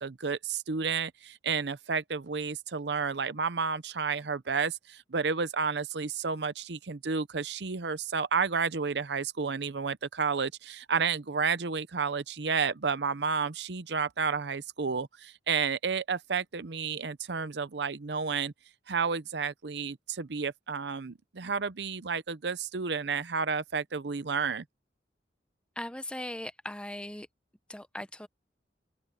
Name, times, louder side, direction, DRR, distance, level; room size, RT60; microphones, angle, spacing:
voice 1, 0.0-18.5 18.9-24.6, right 5 dB, 70° right, 0.7 m, -31 dB
voice 2, 25.8-27.3 27.7-28.3, left 1 dB, 5° left, 0.8 m, -39 dB
head